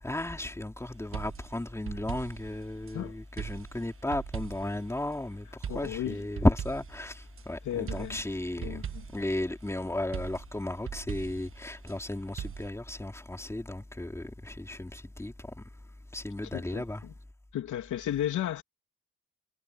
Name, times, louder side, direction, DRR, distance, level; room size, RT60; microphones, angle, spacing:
voice 1, 0.0-5.5 5.7-8.8 9.1-15.3 16.1-17.0, left 1 dB, 10° left, 3.6 m, -34 dB
sound 1, 1.1-3.0 3.4-4.8 5.6-7.4 7.9-9.3 10.1-12.0 12.4-12.7, right 7 dB, 45° right, 1.5 m, -40 dB
voice 2, 5.7-6.2 7.6-8.2 8.6-9.0 16.5-17.1 17.5-18.6, left 11 dB, 75° left, 3.2 m, -34 dB
cardioid pair, 90°, 30 cm